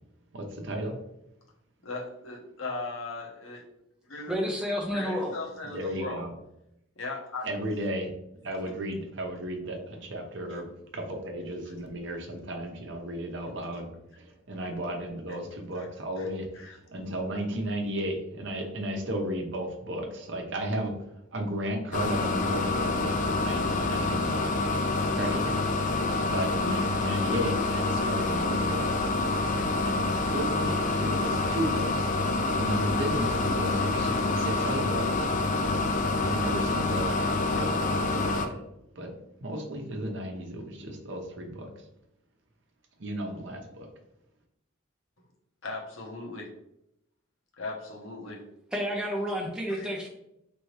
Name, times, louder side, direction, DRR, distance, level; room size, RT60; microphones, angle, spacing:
voice 1, 0.3-1.0 5.7-6.3 7.4-8.1 8.4-24.6 25.1-29.0 29.6-32.1 32.5-35.3 36.3-38.6 38.9-39.1 39.4-41.7 43.0-43.9, right 1 dB, 60° right, 2 dB, 0.8 m, -34 dB
voice 2, 1.8-3.6 4.1-4.3 4.9-6.2 7.0-7.4 10.5-10.6 15.8-15.9 16.2-16.3 16.5-16.8 45.6-46.5 47.6-48.4 49.7-49.9, left 3 dB, 75° left, -1 dB, 1.1 m, -38 dB
voice 3, 4.3-5.3 48.7-50.1, equal, 5° right, -1 dB, 0.7 m, -30 dB
sound 1, 21.9-38.5, left 3 dB, 40° left, 0.4 m, -27 dB
4.1 x 3.4 x 3.2 m, 0.82 s
head